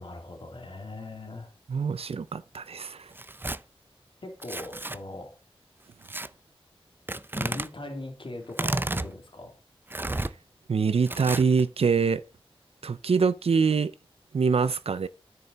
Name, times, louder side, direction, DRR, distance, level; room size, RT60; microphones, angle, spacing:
voice 1, 0.0-1.5 4.2-5.3 7.3-9.6, left 2 dB, 60° left, 2.7 m, -40 dB
voice 2, 1.7-3.1 10.7-12.2 12.8-13.9 14.3-15.1, right 5 dB, 80° right, 0.5 m, -24 dB
Tearing, 3.1-3.6 4.4-5.0 6.0-6.3 7.1-7.7 8.5-9.1 9.9-10.3 11.1-11.6, right 2 dB, 20° right, 0.5 m, -31 dB
9.9 x 6.9 x 3.9 m
wide cardioid pair, 70°, 10 cm